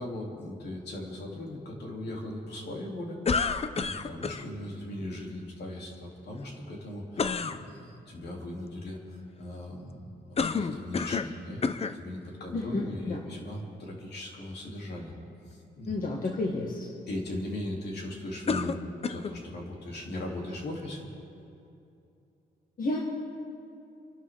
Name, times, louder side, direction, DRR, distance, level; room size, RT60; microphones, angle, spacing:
voice 1, 0.0-15.1 15.5-16.0 17.1-18.8 19.1-21.1, left 1 dB, 65° left, -2 dB, 3.1 m, -39 dB
sound 1, 3.2-4.4 7.2-7.6 10.4-11.3 11.6-12.0 12.8-12.9 18.5-19.4, left 5 dB, 35° left, 0.6 m, -29 dB
voice 2, 12.5-13.2 15.9-16.9 22.8-23.0, left 2 dB, 50° left, -2 dB, 1.9 m, -31 dB
28.0 x 11.5 x 3.7 m, 2.7 s
cardioid pair, 95°, 18 cm